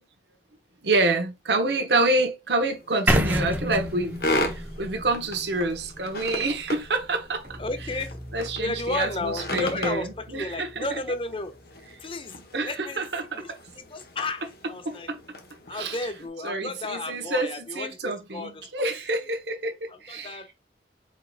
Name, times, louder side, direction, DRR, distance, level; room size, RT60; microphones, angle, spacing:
voice 1, 0.8-7.6 8.3-10.1 10.3-10.8 12.5-13.6 14.8-15.2 15.7-16.0 16.4-20.4, right 2 dB, 75° right, 1.1 m, -27 dB
sound 1, 2.5-16.3, left 1 dB, 60° left, 1.2 m, -37 dB
sound 2, 3.1-7.0, equal, 10° right, 0.7 m, -28 dB
sound 3, 7.4-12.7, equal, 55° right, 1.3 m, -44 dB
voice 2, 7.6-8.1 8.6-11.6 12.0-13.1 13.3-13.5 13.7-15.1 15.7-18.9 19.9-20.5, left 2 dB, 30° left, 0.7 m, -33 dB
4.7 x 4.7 x 2.4 m
head